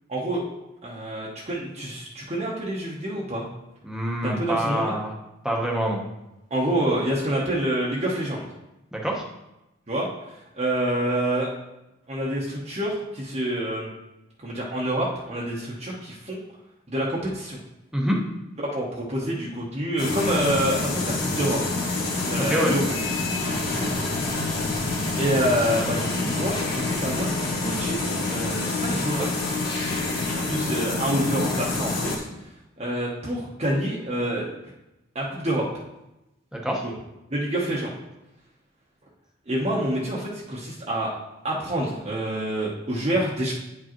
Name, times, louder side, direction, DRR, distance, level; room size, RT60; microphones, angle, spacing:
voice 1, 0.1-0.4 0.8-3.5 4.2-5.0 6.5-8.5 9.9-11.5 12.1-13.9 14.4-16.4 16.9-17.6 18.6-21.6 22.2-22.9 23.5-24.2 25.1-28.0 28.3-29.4 30.3-32.3 32.8-34.5 35.1-35.7 36.8-36.9 37.3-37.9 39.5-41.1 41.4-43.5, right 1 dB, 35° right, -5 dB, 0.9 m, -27 dB
voice 2, 3.8-5.1 5.4-6.0 8.9-9.3 17.9-18.2 22.4-22.7 36.5-36.8, equal, 5° right, -2 dB, 0.9 m, -26 dB
sound 1, 20.0-32.2, left 3 dB, 50° left, 1.4 m, -27 dB
9.2 x 4.8 x 3.0 m, 0.94 s
head